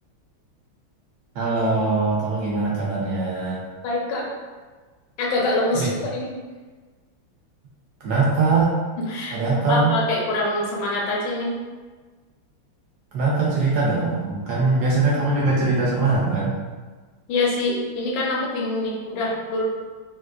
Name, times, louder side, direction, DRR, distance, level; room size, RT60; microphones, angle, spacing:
voice 1, 1.3-3.6 5.7-5.9 8.0-8.7 9.3-9.9 13.1-16.5, right 3 dB, 75° right, -5 dB, 0.9 m, -21 dB
voice 2, 3.8-4.3 5.2-6.3 9.1-9.4 9.7-11.6 17.3-19.6, left 2 dB, 65° left, -3 dB, 1.2 m, -25 dB
3.7 x 2.5 x 2.4 m, 1.4 s
omnidirectional pair, 2.4 m